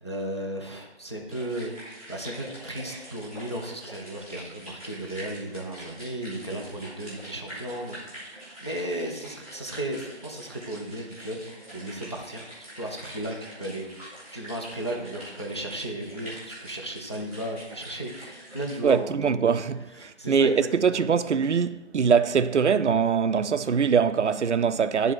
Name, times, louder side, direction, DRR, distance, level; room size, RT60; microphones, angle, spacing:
voice 1, 0.0-1.7 2.1-19.6 19.9-21.0, right 1 dB, 25° left, 0.5 m, -35 dB
sound 1, 1.3-18.9, right 1 dB, 5° left, 1.3 m, -44 dB
voice 2, 18.8-25.1, right 6 dB, 80° right, 0.5 m, -23 dB
9.2 x 3.5 x 4.4 m
figure-of-eight pair, 155°, 34 cm